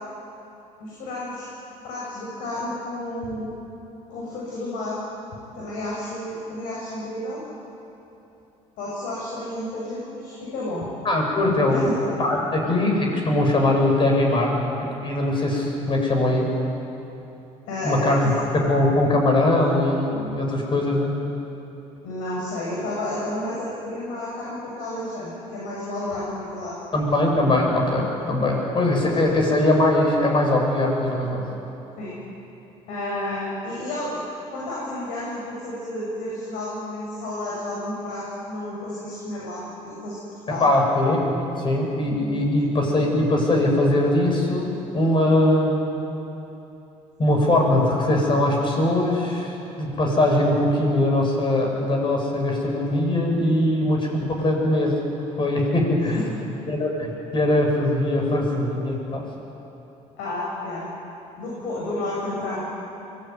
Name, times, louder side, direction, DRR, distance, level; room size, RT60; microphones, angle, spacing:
voice 1, 0.8-1.5 1.8-3.5 4.1-5.0 5.6-7.4 8.8-10.8 11.7-11.9 17.7-18.4 22.0-26.8 32.0-32.2 32.9-34.2 34.5-40.2 40.5-40.7 56.1-56.3 60.2-60.9 61.4-62.6, left 1 dB, 85° left, -5 dB, 6.8 m, -31 dB
voice 2, 11.0-14.7 15.0-16.5 17.8-21.1 26.9-31.5 40.5-45.9 47.2-55.0 55.4-56.2 56.7-59.3, left 1 dB, 35° left, 0 dB, 7.8 m, -21 dB
24.0 x 21.0 x 9.7 m, 2.9 s
cardioid pair, 100°, 14 cm